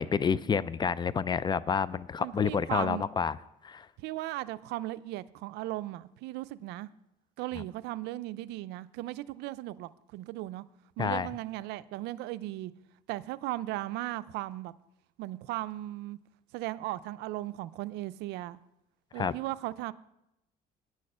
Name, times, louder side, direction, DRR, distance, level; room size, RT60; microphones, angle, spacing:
voice 1, 0.0-3.4 3.6-3.9 11.0-11.3 19.2-19.3, left 6 dB, 25° left, 18 dB, 0.3 m, -29 dB
voice 2, 2.2-3.1 4.0-6.9 7.4-10.6 11.0-12.7 13.1-14.7 15.2-16.2 16.5-18.6 19.1-19.9, right 16 dB, 90° right, 16 dB, 0.4 m, -37 dB
9.5 x 6.4 x 6.7 m, 0.86 s
cardioid pair, 110°, 17 cm